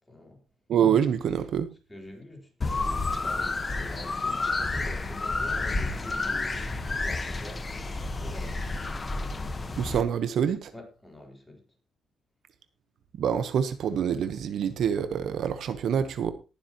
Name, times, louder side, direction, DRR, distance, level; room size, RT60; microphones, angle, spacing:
voice 1, 0.1-0.4 1.9-8.6 10.7-11.6, left 1 dB, 10° left, 3.9 m, -46 dB
voice 2, 0.7-1.7 9.8-10.7 13.1-16.3, right 8 dB, 65° right, 1.0 m, -26 dB
sound 1, 2.6-10.0, left 3 dB, 30° left, 1.3 m, -30 dB
19.0 x 7.3 x 3.0 m
cardioid pair, 90°, 0 cm